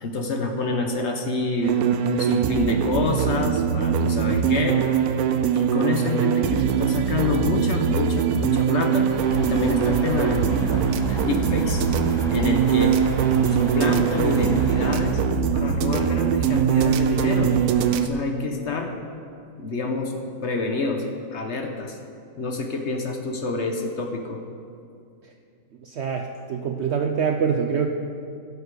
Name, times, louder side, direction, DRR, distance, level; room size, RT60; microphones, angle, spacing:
voice 1, 0.0-4.8 5.5-9.1 9.4-11.9 12.3-12.9 13.5-15.2 15.5-18.9 19.5-21.0 21.3-22.0 22.4-24.4, left 3 dB, 50° left, 3 dB, 1.1 m, -27 dB
sound 1, 1.6-18.1, right 8 dB, 80° right, 1.1 m, -22 dB
sound 2, 9.1-15.1, equal, ahead, 1.4 m, -33 dB
voice 2, 25.8-27.9, right 6 dB, 60° right, 4 dB, 0.7 m, -25 dB
16.0 x 6.7 x 4.7 m, 2.4 s
omnidirectional pair, 1.6 m